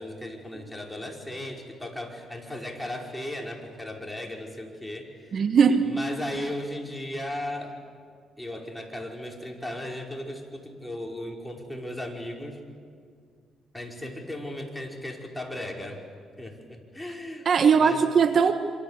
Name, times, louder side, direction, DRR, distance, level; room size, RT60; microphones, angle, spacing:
voice 1, 0.0-5.4 5.8-7.8 8.4-12.6 13.7-16.0 16.4-17.5 17.8-18.1, left 1 dB, 5° left, 0 dB, 5.3 m, -36 dB
voice 2, 5.3-5.9 17.4-18.5, right 6 dB, 55° right, 8 dB, 1.4 m, -19 dB
27.5 x 25.5 x 8.4 m, 2.1 s
cardioid pair, 90°, 0 cm